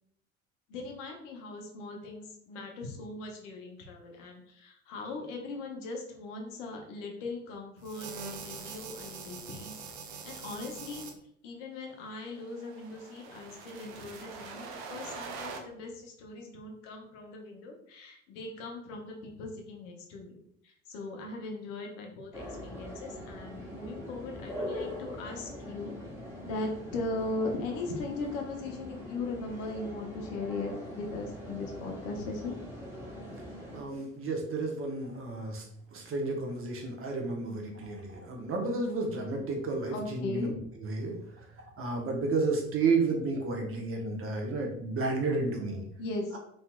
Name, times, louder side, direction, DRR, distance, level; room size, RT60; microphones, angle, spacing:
voice 1, 0.7-9.8 10.0-11.0 11.4-25.9 26.4-32.6 39.9-40.6 46.0-46.4, left 2 dB, 70° left, 2 dB, 0.8 m, -39 dB
sound 1, 7.8-11.1 12.2-15.6, right 5 dB, 65° right, 0.6 m, -43 dB
sound 2, 22.3-33.8, left 1 dB, 5° right, 1.0 m, -42 dB
voice 2, 33.7-35.6 35.9-40.6 40.8-41.2 41.8-45.8, right 3 dB, 35° right, 2 dB, 0.8 m, -31 dB
3.1 x 2.7 x 2.2 m, 0.70 s
hypercardioid pair, 60°, 38 cm